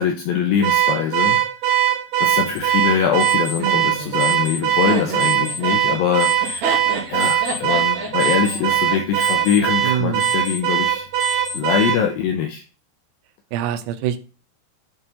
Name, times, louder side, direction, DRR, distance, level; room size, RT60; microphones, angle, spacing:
voice 1, 0.0-1.4 2.2-6.7 7.1-11.1 11.5-12.6, left 7 dB, 80° left, 3 dB, 2.2 m, -22 dB
Car / Alarm, 0.6-12.0, right 11 dB, 65° right, 2.5 m, -20 dB
sound 1, 2.5-11.9, left 4 dB, 20° left, 0.8 m, -36 dB
Laughter, 3.6-9.7, right 3 dB, 50° right, 2.9 m, -30 dB
voice 2, 9.8-10.3 13.5-14.2, right 10 dB, 85° right, 10 dB, 2.8 m, -24 dB
8.8 x 3.8 x 4.3 m, 0.34 s
omnidirectional pair, 4.9 m